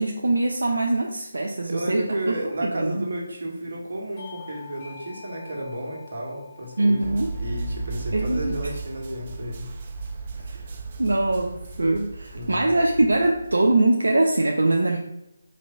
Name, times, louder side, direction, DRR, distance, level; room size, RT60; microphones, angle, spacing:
voice 1, 0.0-3.0 6.8-7.3 8.1-8.5 10.4-10.6 11.0-15.0, right 2 dB, 85° right, 2 dB, 0.7 m, -23 dB
voice 2, 1.6-9.7 12.3-12.7, right 1 dB, 60° right, -1 dB, 1.9 m, -32 dB
Bell / Doorbell, 4.2-9.2, left 7 dB, 35° left, 1.8 m, -47 dB
sound 1, 7.0-13.7, right 3 dB, 40° right, 0.7 m, -35 dB
5.2 x 3.4 x 5.4 m, 0.87 s
figure-of-eight pair, 160°, 0 cm